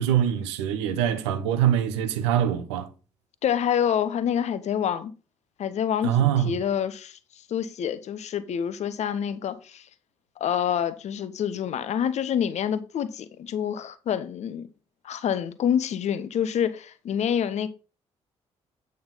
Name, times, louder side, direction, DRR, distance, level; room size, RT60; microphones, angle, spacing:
voice 1, 0.0-2.9 6.0-6.5, right 10 dB, 70° right, 0.9 m, -23 dB
voice 2, 3.4-5.1 5.6-7.2 7.5-9.9 10.4-14.7 15.0-17.7, left 9 dB, 50° left, 0.8 m, -27 dB
8.6 x 3.9 x 5.5 m
figure-of-eight pair, 40°, 15 cm